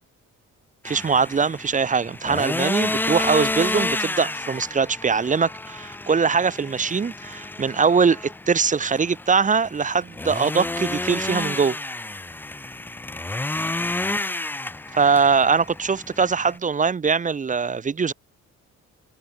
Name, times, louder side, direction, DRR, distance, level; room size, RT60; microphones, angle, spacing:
voice 1, 0.8-11.8 14.9-18.1, right 5 dB, 25° right, 0.7 m, -22 dB
sound 1, 0.9-16.6, left 2 dB, 5° left, 0.4 m, -30 dB
cardioid pair, 90°, 30 cm